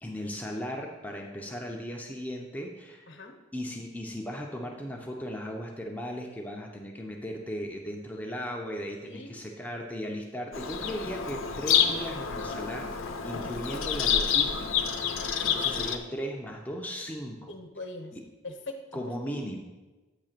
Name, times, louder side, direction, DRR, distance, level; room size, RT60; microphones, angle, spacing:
voice 1, 0.0-3.1 3.5-17.5 18.1-18.2 18.9-19.6, equal, 10° left, 0 dB, 0.7 m, -37 dB
voice 2, 3.1-3.4 9.0-9.4 13.4-13.8 15.4-15.8 17.5-18.2 18.4-19.0, left 2 dB, 60° left, 3 dB, 1.0 m, -42 dB
Bird vocalization bird call bird song, 10.5-16.0, left 8 dB, 85° left, 0.7 m, -28 dB
8.8 x 3.4 x 6.7 m, 1.2 s
head